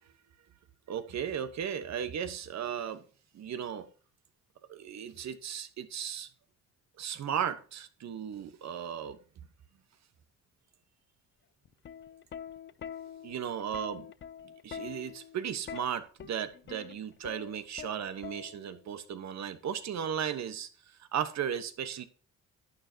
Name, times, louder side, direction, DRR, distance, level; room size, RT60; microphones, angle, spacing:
voice 1, 0.9-3.0 3.3-3.9 4.7-6.3 7.0-9.2 13.2-14.0 14.6-22.0, right 8 dB, 65° right, 1.3 m, -36 dB
Plucked string instrument, 11.7-18.9 20.0-20.3, left 8 dB, 40° left, 0.6 m, -45 dB
11.5 x 9.2 x 2.9 m
cardioid pair, 90°, 30 cm